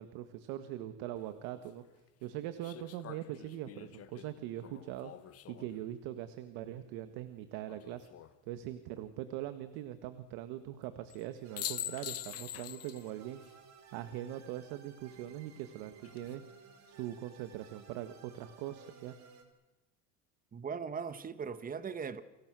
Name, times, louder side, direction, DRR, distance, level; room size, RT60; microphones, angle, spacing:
voice 1, 0.0-1.8 2.2-5.1 5.5-8.1 8.5-13.4 13.9-16.4 16.9-19.2, right 12 dB, 75° right, 1.7 m, -42 dB
sound 1, 1.1-1.2 2.6-5.8 7.7-8.3 11.1-11.2 11.6-13.1 13.4-13.5 15.8-16.3, left 12 dB, 40° left, 1.3 m, -44 dB
sound 2, 11.4-19.4, right 6 dB, 50° right, 4.3 m, -57 dB
voice 2, 20.5-22.2, right 6 dB, 25° right, 1.4 m, -39 dB
29.5 x 25.5 x 6.3 m
cardioid pair, 130°, 36 cm